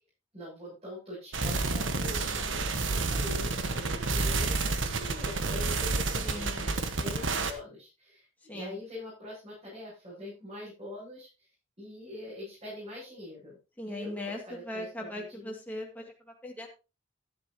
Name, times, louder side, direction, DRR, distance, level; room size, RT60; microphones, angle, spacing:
voice 1, 0.3-8.3 8.5-11.5 11.8-13.6 13.9-15.5, left 1 dB, 35° right, -8 dB, 8.0 m, -44 dB
sound 1, 1.3-7.5, right 3 dB, 75° right, 1.3 m, -30 dB
voice 2, 6.2-6.7 8.5-8.8 13.8-16.7, left 1 dB, 10° left, -1 dB, 2.2 m, -39 dB
12.5 x 11.0 x 2.9 m, 0.30 s
head